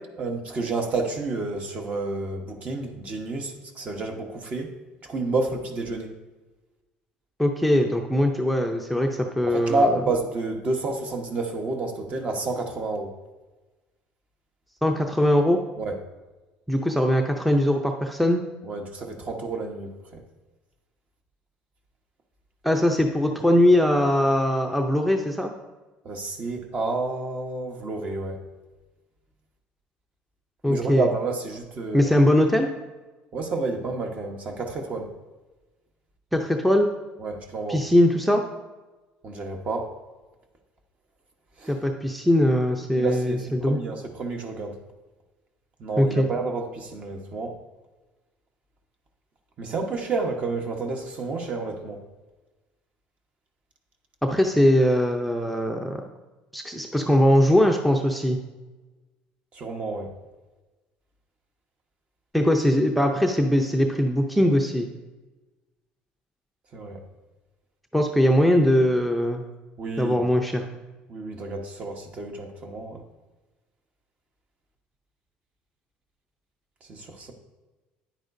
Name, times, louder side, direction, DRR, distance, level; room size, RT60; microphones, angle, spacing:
voice 1, 0.2-4.7 5.0-6.1 9.5-13.1 15.8-16.0 18.6-20.2 26.0-28.4 30.7-32.1 33.3-35.1 37.2-37.8 39.2-39.9 41.6-41.7 43.0-44.8 45.8-47.6 49.6-52.0 59.5-60.1 66.7-67.0 69.8-70.2 71.1-73.0 76.9-77.3, right 3 dB, 40° right, 3 dB, 1.2 m, -30 dB
voice 2, 7.4-9.9 14.8-15.6 16.7-18.4 22.6-25.5 30.6-31.1 31.9-32.7 36.3-36.9 37.7-38.4 41.7-43.8 46.0-46.3 54.2-56.0 56.5-58.4 62.3-64.9 67.9-69.5 70.0-70.6, left 1 dB, ahead, 3 dB, 0.6 m, -21 dB
9.7 x 8.8 x 2.7 m, 1.2 s
cardioid pair, 125°, 4 cm